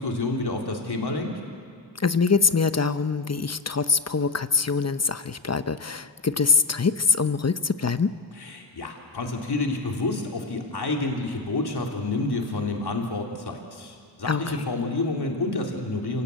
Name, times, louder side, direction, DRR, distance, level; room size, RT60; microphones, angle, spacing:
voice 1, 0.0-1.4 8.4-16.2, left 2 dB, 50° left, 1 dB, 3.3 m, -29 dB
voice 2, 2.0-8.1 14.3-14.7, left 5 dB, 30° left, 12 dB, 1.0 m, -24 dB
26.0 x 17.5 x 8.3 m, 2.3 s
cardioid pair, 50°, 48 cm